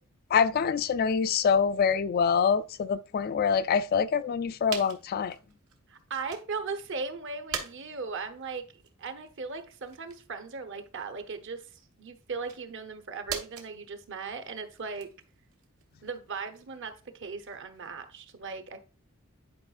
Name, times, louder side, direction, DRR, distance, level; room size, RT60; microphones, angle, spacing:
voice 1, 0.3-5.4, left 6 dB, 45° left, 0.3 m, -25 dB
sound 1, 4.7-6.6 7.0-18.1, right 6 dB, 85° right, 1.3 m, -44 dB
voice 2, 5.9-8.7 9.0-15.1 16.0-18.8, right 4 dB, 60° right, 0.9 m, -38 dB
10.5 x 4.8 x 2.4 m
head